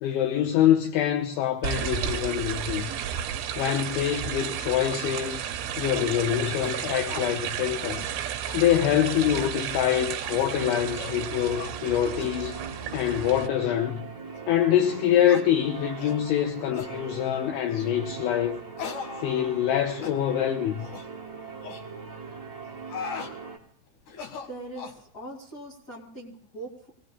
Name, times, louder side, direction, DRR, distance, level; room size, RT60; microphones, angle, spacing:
voice 1, 0.0-2.9 3.6-5.5 5.8-8.0 8.5-12.6 12.9-14.1 14.5-18.6 19.2-20.9, left 10 dB, 80° left, 3.0 m, -25 dB
sound 1, 1.6-13.5, right 9 dB, 70° right, 3.3 m, -33 dB
sound 2, 6.0-6.2 6.6-6.8 7.1-7.3 7.7-8.1 8.5-8.6 9.1-9.6 10.2-10.5 10.9-11.2 11.5-11.7 12.2-12.4 12.9-13.2 13.6-13.7 14.3-14.4 15.2-15.5 16.0-16.2 16.7-16.9 17.7-18.0 18.8-19.7 20.0-20.2 20.8-21.1 21.6-21.8 22.6-23.3 24.1-25.0, left 6 dB, 60° left, 2.2 m, -39 dB
sound 3, 10.5-23.6, right 5 dB, 35° right, 0.6 m, -40 dB
voice 2, 24.5-26.9, right 2 dB, 40° left, 1.3 m, -41 dB
27.5 x 18.0 x 2.2 m
omnidirectional pair, 5.6 m